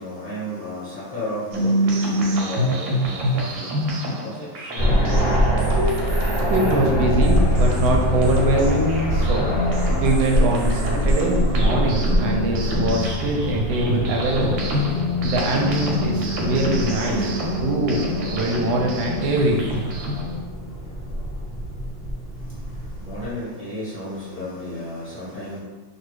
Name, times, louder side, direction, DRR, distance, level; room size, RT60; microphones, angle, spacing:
voice 1, 0.0-3.7 4.2-5.3 23.0-25.6, left 1 dB, 10° right, -10 dB, 0.7 m, -33 dB
sound 1, 1.5-20.4, equal, 90° right, 1.4 m, -27 dB
sound 2, 4.7-23.3, equal, 90° left, 0.5 m, -24 dB
voice 2, 6.2-9.5 10.0-14.6 15.2-17.3 17.6-19.7, right 1 dB, 70° right, 0 dB, 1.0 m, -23 dB
3.1 x 2.3 x 3.1 m, 1.3 s
omnidirectional pair, 2.1 m